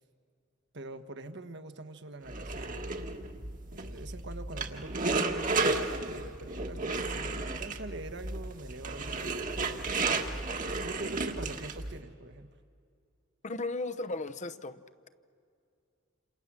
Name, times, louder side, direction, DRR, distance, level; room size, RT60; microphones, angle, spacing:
voice 1, 0.7-2.8 3.7-9.9 10.8-12.5, right 2 dB, 60° right, 8 dB, 1.4 m, -44 dB
sound 1, 2.3-12.0, right 3 dB, 40° right, 1.6 m, -33 dB
voice 2, 13.4-15.1, left 2 dB, 35° left, 11 dB, 0.8 m, -36 dB
28.5 x 28.0 x 7.5 m, 2.4 s
head